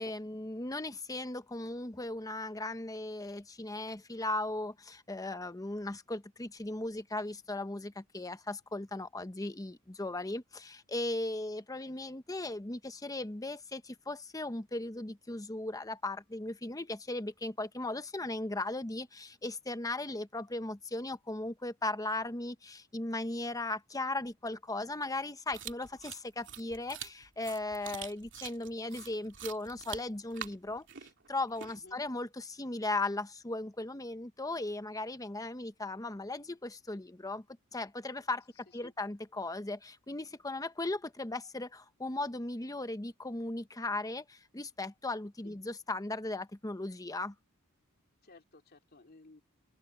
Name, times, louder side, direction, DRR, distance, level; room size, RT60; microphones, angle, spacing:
voice 1, 0.0-30.9 31.3-37.4 37.7-38.4 38.7-47.3, left 2 dB, 15° left, 0.9 m, -37 dB
sound 1, 25.5-32.0, right 9 dB, 60° right, 2.7 m, -46 dB
voice 2, 31.7-32.0 38.7-38.9 45.4-45.6 48.2-49.4, left 2 dB, 45° left, 2.7 m, -57 dB
open air
head